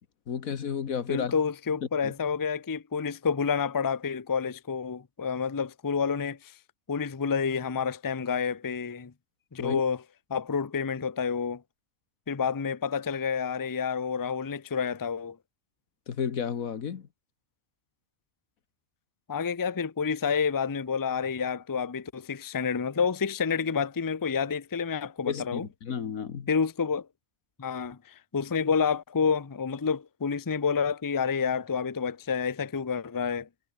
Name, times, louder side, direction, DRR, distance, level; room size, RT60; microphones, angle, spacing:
voice 1, 0.3-1.3 2.0-2.1 9.6-9.8 16.1-17.1 25.3-26.5, left 7 dB, 90° left, 1.8 m, -32 dB
voice 2, 1.1-6.5 6.9-9.1 9.5-10.0 10.3-11.6 12.3-15.4 19.3-25.7 26.5-27.1 27.6-33.5, left 6 dB, 20° left, 0.5 m, -29 dB
omnidirectional pair, 1.4 m